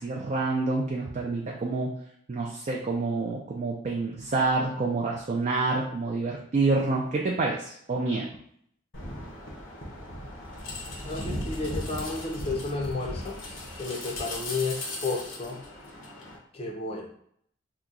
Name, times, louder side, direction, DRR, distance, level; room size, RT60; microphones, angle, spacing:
voice 1, 0.0-1.9 2.3-8.3, right 3 dB, 40° right, -1 dB, 0.4 m, -27 dB
sound 1, 8.9-16.4, left 1 dB, 75° left, 0.8 m, -37 dB
voice 2, 11.0-13.4 13.8-15.6 16.5-17.1, left 3 dB, 30° left, 1 dB, 0.6 m, -32 dB
2.9 x 2.2 x 3.7 m, 0.67 s
head